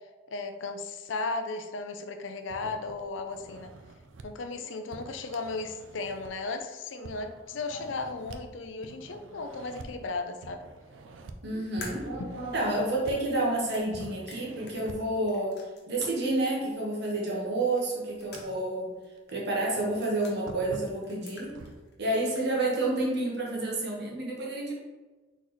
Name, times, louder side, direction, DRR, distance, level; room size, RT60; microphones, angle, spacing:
voice 1, 0.3-3.7 4.2-10.6 13.1-13.2, left 3 dB, 75° left, 6 dB, 0.5 m, -35 dB
sound 1, 2.5-4.3 4.9-6.5 7.0-8.4 8.8-9.9 10.4-11.4 11.8-13.6 13.9-15.1 17.0-17.1 17.7-18.8 19.2-19.3 19.8-21.8, right 3 dB, 85° right, 0.5 m, -47 dB
voice 2, 9.1-9.4 9.7-9.9 11.4-15.6 15.9-18.9 19.3-21.5 22.0-24.7, right 2 dB, 60° right, -3 dB, 1.3 m, -30 dB
sound 2, 11.8-16.2 16.5-16.6 17.8-18.8 19.0-19.1 19.8-20.4 20.9-21.9 22.2-23.1, left 3 dB, 60° left, 1.0 m, -48 dB
4.1 x 3.9 x 3.1 m, 1.2 s
head